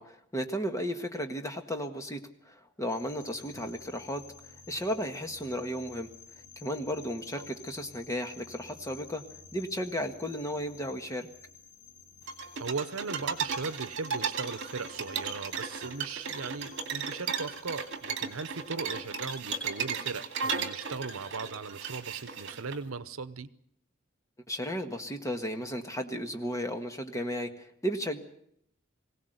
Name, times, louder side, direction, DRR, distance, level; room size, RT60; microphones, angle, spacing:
voice 1, 0.0-6.1 6.6-9.2 9.5-11.3 24.5-28.2, equal, 15° left, 6 dB, 1.6 m, -34 dB
sound 1, 2.9-20.2, left 6 dB, 40° left, 3.1 m, -53 dB
sound 2, 12.3-22.8, right 5 dB, 60° right, 2.3 m, -35 dB
voice 2, 12.6-23.5, right 4 dB, 85° right, 15 dB, 0.9 m, -38 dB
22.0 x 17.0 x 8.0 m, 0.72 s
head